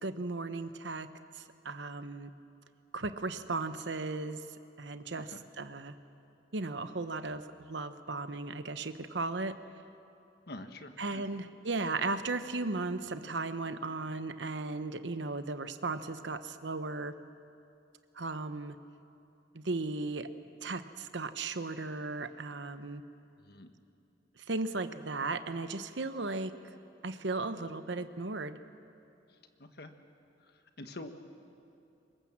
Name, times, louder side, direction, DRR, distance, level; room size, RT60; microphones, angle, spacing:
voice 1, 0.0-1.1 1.3-2.3 2.9-4.4 4.8-5.9 6.5-9.6 11.0-17.2 18.2-18.7 19.5-20.3 20.6-23.0 24.5-26.5 27.0-28.6, right 3 dB, 70° right, 11 dB, 1.0 m, -36 dB
voice 2, 10.5-11.3 23.4-23.7 29.8-29.9 30.8-31.2, left 1 dB, 55° left, 7 dB, 1.5 m, -45 dB
24.5 x 21.0 x 7.4 m, 2.7 s
head